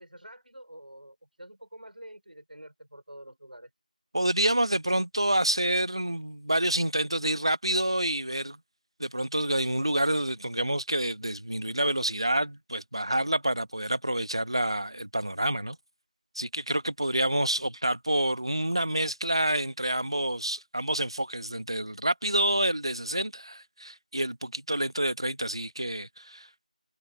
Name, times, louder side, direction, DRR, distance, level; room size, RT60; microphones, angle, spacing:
voice 1, 0.0-3.7 17.5-17.7, right 1 dB, 85° right, 5.3 m, -48 dB
voice 2, 4.1-8.6 9.0-15.8 16.3-26.7, right 1 dB, 35° right, 1.1 m, -28 dB
figure-of-eight pair, 180°, 5 cm